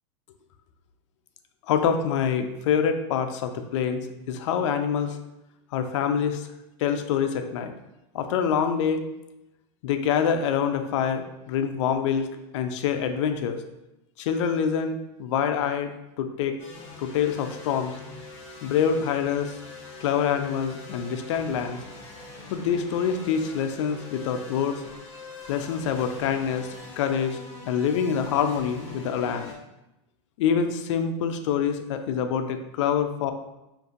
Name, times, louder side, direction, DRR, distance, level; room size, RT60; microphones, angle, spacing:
voice 1, 1.7-5.2 5.7-6.5 6.8-7.7 8.1-9.1 9.8-13.6 14.2-15.9 16.2-16.6 17.0-18.0 18.6-19.6 20.0-21.8 22.5-24.8 25.5-26.7 27.0-27.4 27.6-29.5 30.4-33.3, left 7 dB, 75° left, 7 dB, 0.4 m, -26 dB
sound 1, 16.6-29.5, left 3 dB, 15° left, 1.3 m, -43 dB
5.2 x 2.5 x 2.5 m, 0.92 s
supercardioid pair, 165°, 16 cm